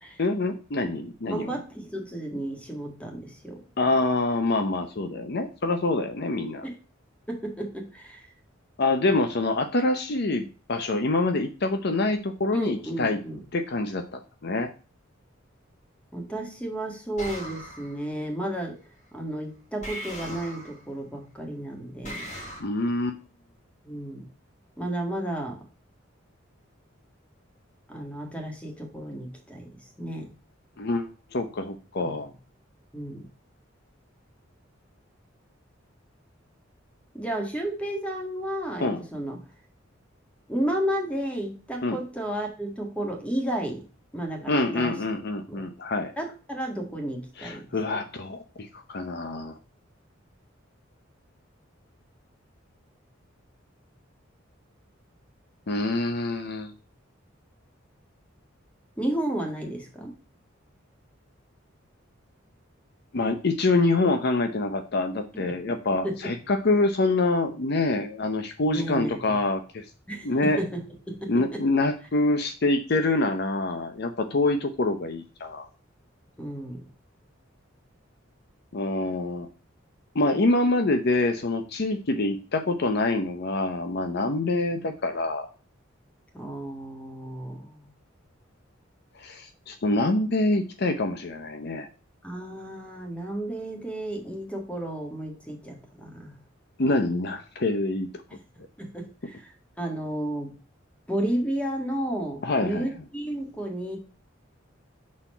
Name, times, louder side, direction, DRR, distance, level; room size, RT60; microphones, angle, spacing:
voice 1, 0.2-1.6 3.8-6.6 8.8-13.2 13.5-14.7 22.6-23.2 30.8-32.3 38.8-39.0 41.8-42.0 44.5-46.1 47.4-49.6 55.7-56.7 63.1-69.8 70.2-70.6 71.3-75.7 78.7-79.5 80.1-85.5 89.2-91.9 96.8-98.1 102.4-102.9, left 2 dB, 55° left, 7 dB, 0.7 m, -26 dB
voice 2, 1.3-3.6 6.6-6.7 7.3-8.3 12.5-13.4 16.1-18.7 19.1-22.3 23.8-24.2 24.8-25.6 27.9-29.7 30.0-30.3 32.0-32.1 32.9-33.2 37.1-39.4 40.5-43.8 44.1-44.9 45.5-45.7 46.2-47.6 59.0-60.1 65.3-65.4 66.0-66.2 68.6-69.2 70.1-70.3 70.6-70.8 71.1-71.6 76.4-76.8 86.3-87.9 92.2-96.3 98.8-99.5 99.8-100.5 101.1-104.0, right 1 dB, 5° left, 2 dB, 1.8 m, -32 dB
sound 1, 17.2-18.0 19.8-20.9 22.0-22.6, equal, 35° left, 2.2 m, -38 dB
6.0 x 4.3 x 5.4 m, 0.35 s
head